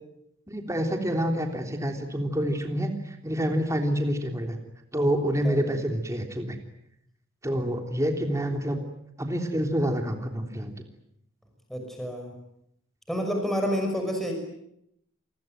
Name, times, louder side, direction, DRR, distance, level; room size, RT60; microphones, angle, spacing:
voice 1, 0.5-4.6 4.9-6.6 7.4-8.8 9.2-10.7, equal, 15° right, 4 dB, 3.4 m, -27 dB
voice 2, 11.7-12.3 13.1-14.3, equal, ahead, 2 dB, 6.0 m, -29 dB
28.5 x 22.0 x 9.1 m, 0.77 s
head